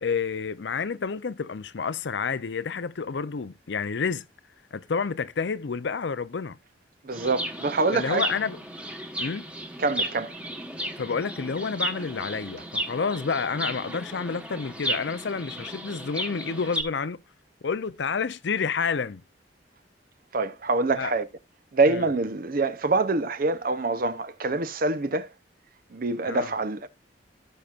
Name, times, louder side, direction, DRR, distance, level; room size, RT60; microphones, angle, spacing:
voice 1, 0.0-4.2 4.7-6.6 7.9-8.6 9.2-9.5 11.0-17.2 17.6-19.2 21.0-21.1 21.9-22.0 26.3-26.5, left 5 dB, 70° left, 0.5 m, -29 dB
voice 2, 7.0-8.3 9.8-10.3 20.3-21.3 21.7-25.3 25.9-26.9, right 3 dB, 50° right, 0.7 m, -25 dB
Chirp tweet, 7.1-16.8, right 1 dB, 5° right, 1.2 m, -34 dB
17.0 x 5.8 x 2.4 m
head